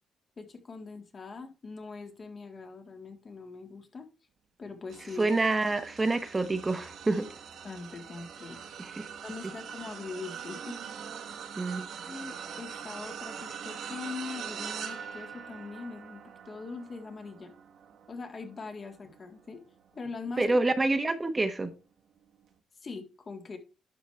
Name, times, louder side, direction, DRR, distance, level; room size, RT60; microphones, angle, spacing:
voice 1, 0.4-4.1 4.6-5.3 7.6-8.6 9.2-10.8 11.9-17.5 18.1-19.6 19.9-20.5 22.8-23.6, left 4 dB, 40° left, 1.7 m, -42 dB
sound 1, 4.9-20.4 20.9-21.2 22.4-22.5, right 7 dB, 70° right, 1.4 m, -43 dB
voice 2, 5.2-7.3 8.8-9.0 11.6-11.8 20.4-21.7, right 2 dB, 20° right, 1.0 m, -27 dB
11.5 x 5.0 x 3.2 m
cardioid pair, 90°, 0 cm